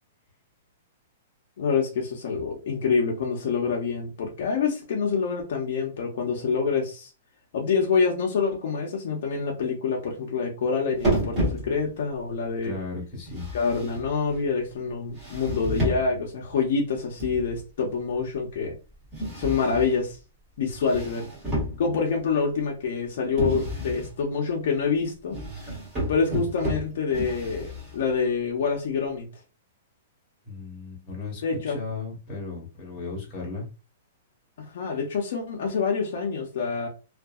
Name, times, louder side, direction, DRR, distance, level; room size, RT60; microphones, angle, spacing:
voice 1, 1.6-7.1 7.5-12.7 13.5-18.7 19.4-20.2 20.6-21.3 21.8-25.4 26.1-29.3 31.4-31.8 34.6-36.9, left 5 dB, 55° left, 0 dB, 0.7 m, -26 dB
sound 1, 11.0-12.1 13.3-14.5 15.2-16.3 17.2-17.6 19.1-20.1 20.7-22.2 23.4-24.1 25.3-28.1, right 1 dB, 15° right, 1.5 m, -30 dB
voice 2, 12.6-13.5 30.4-33.7, left 3 dB, 25° left, -2 dB, 1.1 m, -36 dB
2.6 x 2.6 x 2.4 m, 0.31 s
hypercardioid pair, 170°, 0 cm